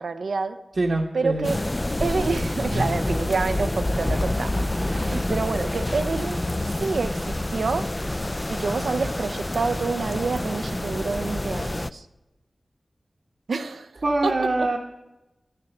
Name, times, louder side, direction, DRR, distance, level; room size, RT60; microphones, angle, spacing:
voice 1, 0.0-0.6 1.1-1.6 2.0-8.0 8.5-12.1 13.5-13.9 14.2-14.7, right 4 dB, 85° right, 0.6 m, -28 dB
voice 2, 0.8-1.5 2.7-2.8 4.9-5.2 14.0-14.8, right 2 dB, 60° right, 1.0 m, -24 dB
sound 1, 1.4-11.9, left 1 dB, 25° left, 0.4 m, -27 dB
11.0 x 6.7 x 7.0 m
cardioid pair, 45°, 0 cm